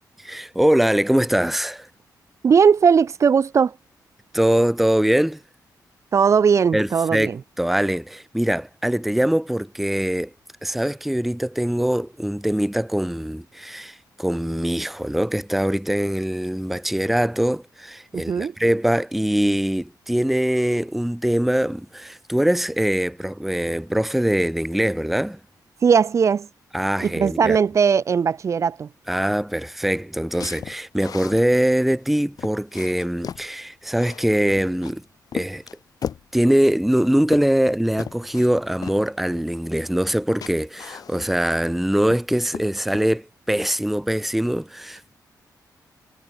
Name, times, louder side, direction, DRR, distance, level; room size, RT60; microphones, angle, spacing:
voice 1, 0.2-1.9 4.3-5.4 6.7-10.3 10.6-25.4 26.7-27.6 29.1-35.0 35.3-35.6 36.3-45.1, right 1 dB, ahead, 0.8 m, -22 dB
voice 2, 2.4-3.8 6.1-7.4 18.1-18.5 25.8-26.5 27.0-28.9, right 6 dB, 45° right, 0.9 m, -18 dB
sound 1, 30.3-31.4 32.0-32.1 32.4-33.5 33.9-34.9 35.3-36.3 36.9-37.7 38.0-38.5 38.8-39.0 40.0-40.2 40.4-41.5 41.8-42.3 42.5-43.1, left 8 dB, 60° left, 2.6 m, -35 dB
wide cardioid pair, 140°, 7 cm